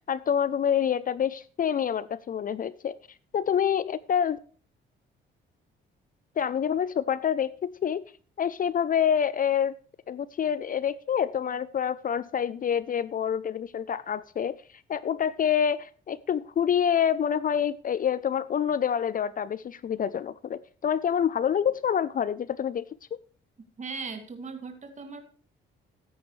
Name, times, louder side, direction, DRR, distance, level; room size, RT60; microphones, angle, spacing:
voice 1, 0.1-2.9 3.3-4.4 6.4-8.0 8.4-9.8 10.1-14.6 14.9-22.9, left 8 dB, 45° left, 18 dB, 0.5 m, -27 dB
voice 2, 23.8-25.2, right 4 dB, 35° right, 5 dB, 2.3 m, -38 dB
14.5 x 9.2 x 3.2 m, 0.42 s
cardioid pair, 90°, 20 cm